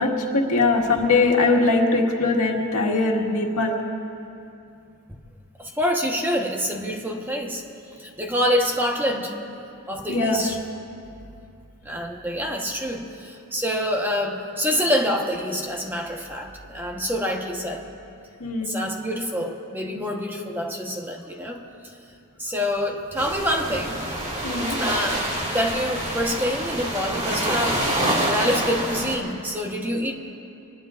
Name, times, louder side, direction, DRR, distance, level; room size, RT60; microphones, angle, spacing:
voice 1, 0.0-3.8 10.1-10.4 18.4-18.8 24.4-24.8, left 3 dB, 80° left, -1 dB, 1.9 m, -21 dB
voice 2, 5.6-7.6 8.0-9.3 9.9-10.6 11.8-17.8 18.6-21.7 22.4-24.0 24.8-30.1, equal, 10° right, 1 dB, 1.2 m, -26 dB
sound 1, 23.2-29.2, right 1 dB, 30° right, 2.3 m, -26 dB
25.0 x 20.0 x 2.5 m, 2.6 s
head